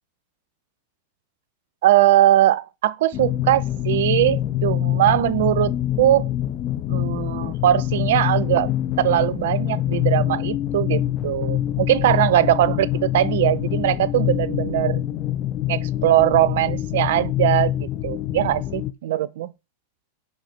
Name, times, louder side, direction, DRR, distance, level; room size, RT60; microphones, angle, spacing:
voice 1, 1.8-6.3 6.9-8.7 9.0-15.0 15.7-19.5, right 13 dB, 55° right, 0.3 m, -20 dB
sound 1, 3.1-18.9, left 13 dB, 35° left, 0.4 m, -25 dB
5.4 x 4.1 x 4.3 m
figure-of-eight pair, 90°, 0 cm